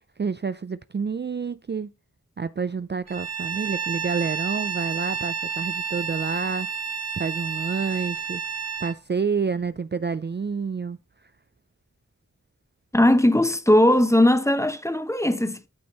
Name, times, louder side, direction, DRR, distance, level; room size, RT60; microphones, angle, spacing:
voice 1, 0.2-1.9 2.4-6.7 7.2-8.4 8.8-11.0, right 5 dB, 35° right, 0.4 m, -28 dB
Bowed string instrument, 3.1-9.0, right 6 dB, 55° right, 0.8 m, -30 dB
voice 2, 12.9-15.7, left 1 dB, 10° left, 0.8 m, -19 dB
8.6 x 6.1 x 4.0 m
wide cardioid pair, 45°, 30 cm